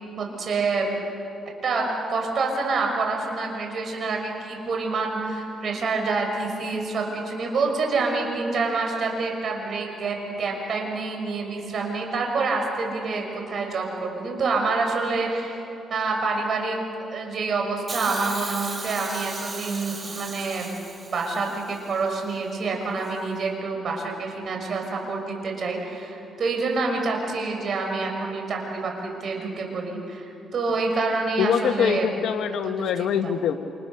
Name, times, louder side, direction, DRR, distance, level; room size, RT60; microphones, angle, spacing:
voice 1, 0.2-0.9 1.6-15.6 15.9-16.8 17.1-20.7 21.1-32.1 32.6-33.3, right 3 dB, 55° right, 1 dB, 6.0 m, -27 dB
Hiss, 17.9-22.0 23.0-23.1, right 3 dB, 35° right, 3.1 m, -36 dB
voice 2, 31.4-33.5, left 8 dB, 75° left, 7 dB, 1.2 m, -24 dB
28.5 x 28.0 x 6.8 m, 2.9 s
cardioid pair, 90°, 0 cm